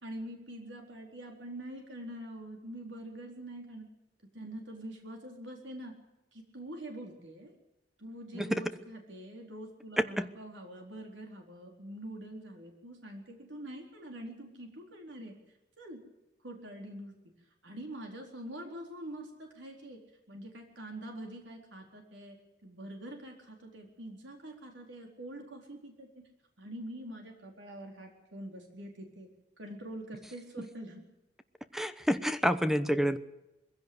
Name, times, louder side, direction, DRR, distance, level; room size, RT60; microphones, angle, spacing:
voice 1, 0.0-3.9 4.3-5.9 6.3-7.5 8.0-15.3 15.8-16.0 16.4-17.1 17.6-20.0 20.3-22.4 22.6-26.2 26.6-29.3 29.6-31.0, right 1 dB, 90° right, 2 dB, 4.2 m, -45 dB
voice 2, 10.0-10.3 31.7-33.2, equal, ahead, 11 dB, 0.9 m, -28 dB
21.5 x 16.0 x 8.0 m, 0.92 s
head